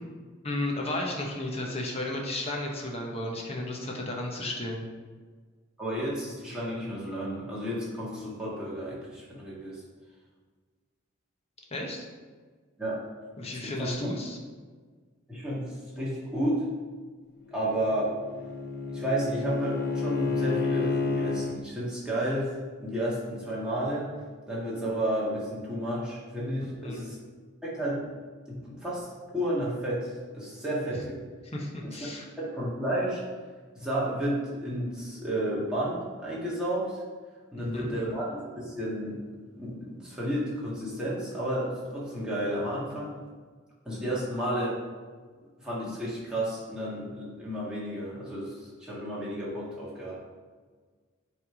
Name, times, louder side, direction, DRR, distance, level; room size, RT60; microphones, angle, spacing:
voice 1, 0.4-4.9 11.7-12.0 13.4-14.4 26.8-27.0 31.5-32.3 37.6-37.9, left 1 dB, 30° left, 0 dB, 1.0 m, -33 dB
voice 2, 5.8-9.8 12.8-13.0 13.6-14.1 15.3-16.6 17.5-18.2 18.9-22.5 22.8-24.1 24.5-27.2 27.6-28.1 28.5-31.2 31.8-32.1 32.4-33.2 33.8-37.0 37.5-39.2 39.5-43.2 43.9-44.8 45.6-50.2, right 1 dB, 5° right, -8 dB, 1.8 m, -32 dB
Bowed string instrument, 17.5-21.5, left 4 dB, 50° left, 0.7 m, -30 dB
7.6 x 3.5 x 4.8 m, 1.5 s
head